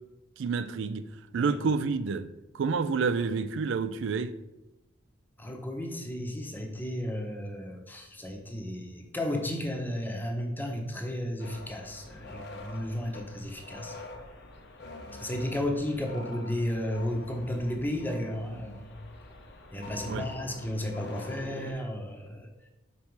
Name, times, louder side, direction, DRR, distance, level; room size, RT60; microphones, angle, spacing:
voice 1, 0.4-2.3 2.5-4.3 20.1-20.2, right 5 dB, 65° right, 0.4 m, -29 dB
voice 2, 5.4-13.9 15.1-19.0 19.7-22.5, left 1 dB, 10° left, 0.8 m, -33 dB
sound 1, 11.4-21.7, left 2 dB, 60° left, 0.9 m, -45 dB
5.4 x 4.2 x 4.5 m
head